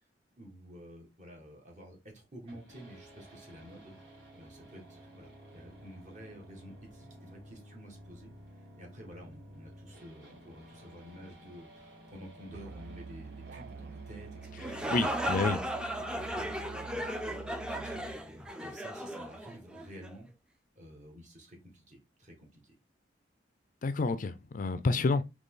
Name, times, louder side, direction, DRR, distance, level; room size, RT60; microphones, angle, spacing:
voice 1, 0.4-4.0 4.3-8.3 8.6-15.1 15.4-15.8 16.1-18.0 18.3-20.3 20.7-22.8, equal, 45° right, 1.6 m, -51 dB
sound 1, 2.5-18.5, equal, 85° right, 2.2 m, -54 dB
Musical instrument, 12.5-18.2, right 5 dB, 65° right, 0.3 m, -46 dB
sound 2, 14.4-20.1, equal, 5° right, 0.5 m, -36 dB
voice 2, 14.9-15.6 23.8-25.2, left 3 dB, 50° left, 0.4 m, -29 dB
4.0 x 3.1 x 3.7 m
head